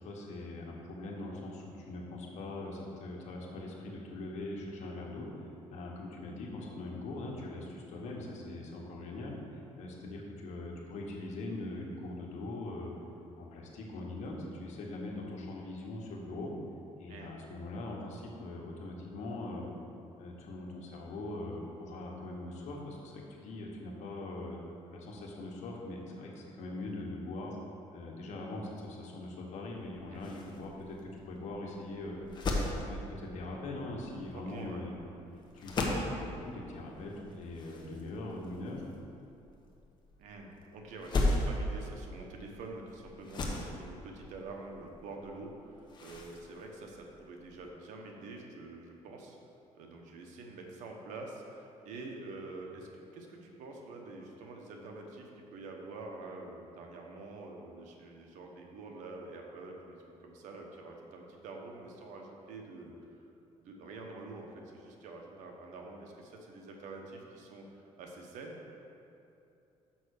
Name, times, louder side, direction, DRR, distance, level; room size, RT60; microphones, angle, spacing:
voice 1, 0.0-5.3 5.7-12.9 13.3-16.5 17.0-19.7 20.2-24.6 24.9-27.6 27.9-32.2 32.9-34.9 35.5-38.8, left 2 dB, 70° left, -1 dB, 1.5 m, -42 dB
sound 1, 29.7-47.7, left 2 dB, 40° left, 1.1 m, -38 dB
voice 2, 34.3-34.8 40.2-49.4 49.7-63.3 63.6-68.6, right 2 dB, 90° right, 1 dB, 1.2 m, -46 dB
6.1 x 5.8 x 6.6 m, 2.7 s
cardioid pair, 120°, 12 cm